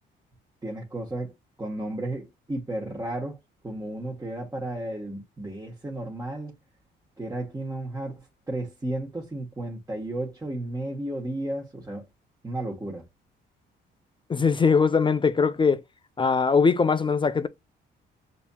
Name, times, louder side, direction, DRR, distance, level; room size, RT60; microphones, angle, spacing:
voice 1, 0.6-3.4 3.6-6.5 7.2-12.0 12.4-13.0, right 1 dB, 15° right, 1.3 m, -33 dB
voice 2, 14.3-15.8 16.2-17.5, left 5 dB, 25° left, 0.4 m, -21 dB
6.7 x 2.8 x 2.3 m
cardioid pair, 90°, 20 cm